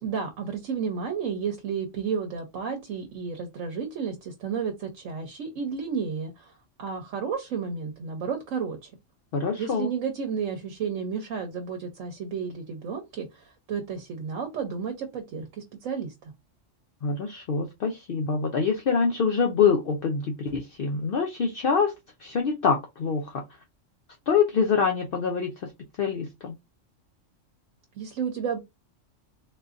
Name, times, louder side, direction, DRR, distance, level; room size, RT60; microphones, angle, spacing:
voice 1, 0.0-6.5 6.8-8.9 9.6-16.1 28.0-28.6, right 6 dB, 80° right, 1.1 m, -32 dB
voice 2, 9.3-9.9 17.0-21.9 22.2-23.4 24.3-25.7 26.0-26.5, left 5 dB, 60° left, 0.6 m, -25 dB
3.7 x 2.6 x 2.4 m
omnidirectional pair, 1.3 m